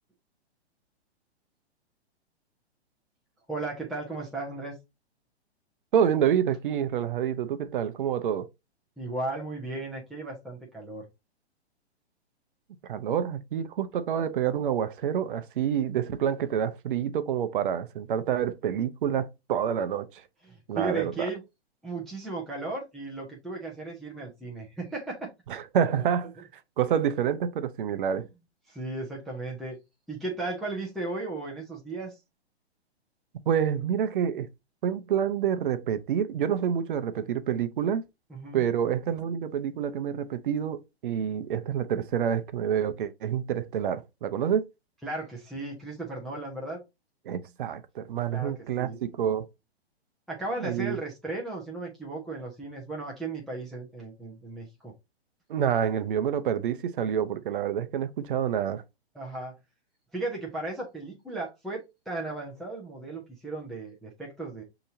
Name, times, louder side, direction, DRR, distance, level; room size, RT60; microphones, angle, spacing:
voice 1, 3.5-4.8 9.0-11.1 20.4-21.4 21.8-25.3 28.2-28.3 28.7-29.8 30.1-32.2 38.3-38.6 45.0-46.8 48.3-49.0 50.3-54.9 59.1-59.6 60.1-64.6, right 2 dB, ahead, 0.3 m, -35 dB
voice 2, 5.9-8.5 12.8-20.2 20.7-21.1 25.5-26.5 26.8-28.3 33.5-34.5 34.8-38.0 38.5-44.7 47.3-49.5 50.6-51.0 55.5-58.8, right 8 dB, 50° right, 0.6 m, -28 dB
6.3 x 2.9 x 2.6 m
figure-of-eight pair, 115°, 33 cm